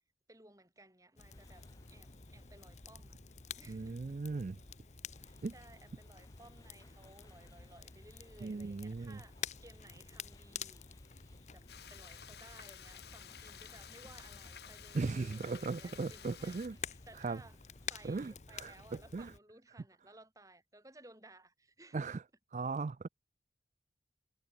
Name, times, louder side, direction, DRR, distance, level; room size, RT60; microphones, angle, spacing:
voice 1, 0.3-3.2 3.5-4.2 5.1-10.8 11.5-17.6 17.9-22.2, right 2 dB, 20° right, 7.9 m, -59 dB
Crackle, 1.2-19.4, left 7 dB, 40° left, 1.0 m, -50 dB
sound 1, 1.3-17.9, left 1 dB, 20° left, 5.4 m, -63 dB
voice 2, 3.7-4.6 5.4-5.5 8.4-9.2 14.9-16.8 17.2-17.4 18.0-19.3 21.9-22.2 22.5-23.1, right 3 dB, 45° right, 0.4 m, -38 dB
Frying (food), 11.7-16.7, left 8 dB, 70° left, 2.9 m, -53 dB
head